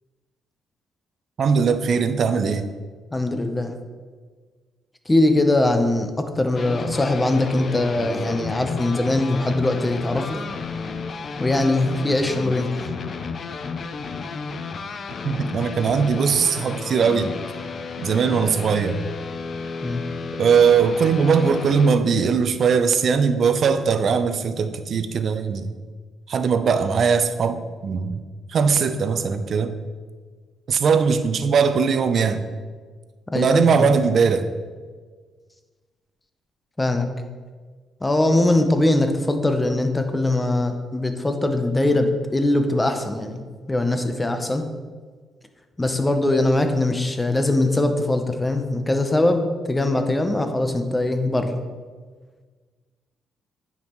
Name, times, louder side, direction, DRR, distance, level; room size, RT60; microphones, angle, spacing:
voice 1, 1.4-2.7 15.2-17.3 18.0-19.0 20.4-25.7 26.3-28.2 28.5-29.8 30.7-32.4 33.3-34.5, right 6 dB, 55° right, 9 dB, 0.5 m, -20 dB
voice 2, 3.1-3.8 5.1-10.4 11.4-12.7 19.8-20.0 33.3-33.9 36.8-37.1 38.0-44.6 45.8-51.6, left 2 dB, 15° left, 6 dB, 0.8 m, -21 dB
sound 1, 6.5-21.9, left 4 dB, 50° left, 0.5 m, -32 dB
9.4 x 5.4 x 3.1 m, 1.5 s
cardioid pair, 90°, 0 cm